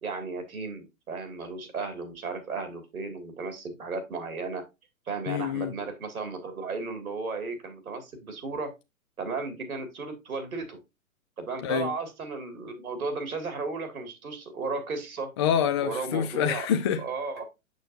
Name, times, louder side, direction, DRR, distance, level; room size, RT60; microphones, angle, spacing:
voice 1, 0.0-4.6 5.1-8.7 9.2-10.8 11.4-15.3 15.8-16.7 17.0-17.4, right 4 dB, 80° right, 2.2 m, -34 dB
voice 2, 5.3-5.7 11.6-11.9 15.4-17.0, left 8 dB, 25° left, 0.3 m, -26 dB
6.6 x 6.4 x 2.5 m
hypercardioid pair, 115°, 42 cm